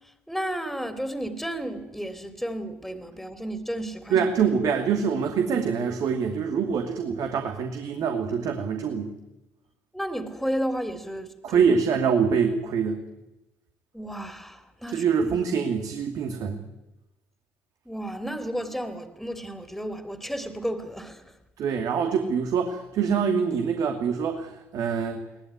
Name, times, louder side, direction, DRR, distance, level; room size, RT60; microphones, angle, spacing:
voice 1, 0.0-4.2 9.9-11.6 13.9-15.0 17.8-21.3, equal, ahead, 3.2 m, -32 dB
voice 2, 4.1-9.1 11.4-13.0 14.9-16.6 21.6-25.2, right 6 dB, 60° right, 2.6 m, -25 dB
22.0 x 18.0 x 9.8 m
hypercardioid pair, 55°, 7 cm